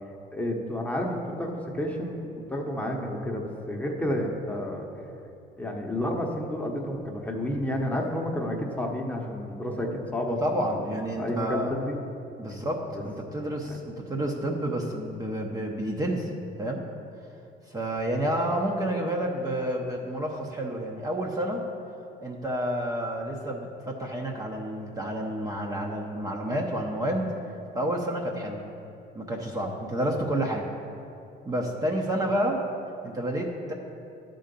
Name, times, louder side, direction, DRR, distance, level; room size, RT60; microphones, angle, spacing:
voice 1, 0.3-4.9 5.6-10.7 11.1-11.9 12.9-13.0 13.7-13.8, left 1 dB, 10° left, 0 dB, 1.0 m, -30 dB
voice 2, 10.4-11.7 12.4-16.3 16.6-16.8 17.7-21.6 22.2-27.3 27.7-28.7 29.1-30.7 31.4-32.6 33.0-33.7, right 1 dB, 20° right, 0 dB, 0.9 m, -29 dB
11.0 x 3.9 x 6.9 m, 2.6 s
cardioid pair, 110°, 17 cm